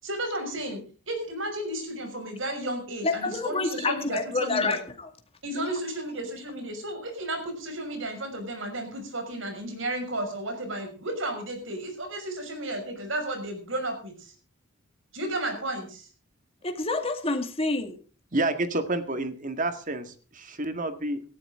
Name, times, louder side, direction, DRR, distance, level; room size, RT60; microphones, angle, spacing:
voice 1, 0.0-4.8 5.4-14.3 15.1-16.1, right 1 dB, 65° right, 5 dB, 6.0 m, -33 dB
voice 2, 3.0-5.1 5.6-5.7 16.6-18.0, left 3 dB, 30° left, 7 dB, 2.1 m, -28 dB
voice 3, 18.3-21.2, right 2 dB, 40° right, 9 dB, 1.9 m, -29 dB
18.5 x 14.0 x 3.7 m, 0.38 s
head